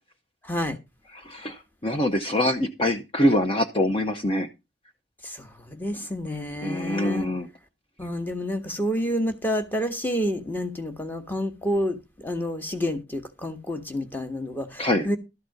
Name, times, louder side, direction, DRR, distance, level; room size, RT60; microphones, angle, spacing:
voice 1, 0.4-0.8 5.2-7.3 8.0-12.0 12.2-15.2, equal, 10° left, 1.3 m, -29 dB
voice 2, 1.1-4.5 6.6-7.5 14.8-15.1, left 1 dB, 30° left, 0.9 m, -24 dB
13.0 x 4.3 x 7.8 m
head